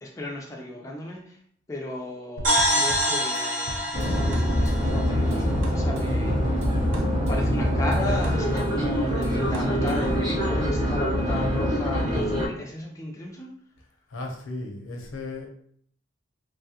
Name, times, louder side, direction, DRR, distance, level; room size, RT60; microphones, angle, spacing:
voice 1, 0.0-1.4 1.7-6.7 7.3-13.5, left 1 dB, 15° left, -1 dB, 0.4 m, -35 dB
sound 1, 2.4-6.1, equal, 45° right, 0.9 m, -26 dB
sound 2, 2.4-10.3, right 1 dB, 80° right, 0.4 m, -38 dB
sound 3, 3.9-12.5, equal, 20° right, 0.7 m, -24 dB
voice 2, 14.1-15.5, left 2 dB, 85° left, 1 dB, 0.6 m, -35 dB
3.0 x 2.3 x 2.7 m, 0.62 s
head